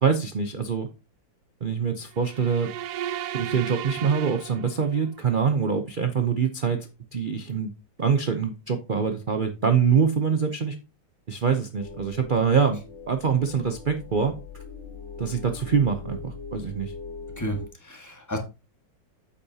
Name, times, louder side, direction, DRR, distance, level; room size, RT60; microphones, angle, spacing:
voice 1, 0.0-0.9 1.6-2.7 3.3-7.7 8.0-10.8 11.3-12.8 13.1-14.3 15.2-16.9, right 6 dB, 85° right, 7 dB, 0.4 m, -24 dB
sound 1, 2.1-5.2, right 11 dB, 70° right, 1.0 m, -35 dB
sound 2, 11.8-17.7, left 5 dB, 70° left, 2.1 m, -41 dB
voice 2, 17.4-18.4, equal, 10° left, 3 dB, 1.5 m, -32 dB
8.5 x 8.4 x 2.8 m, 0.29 s
omnidirectional pair, 2.1 m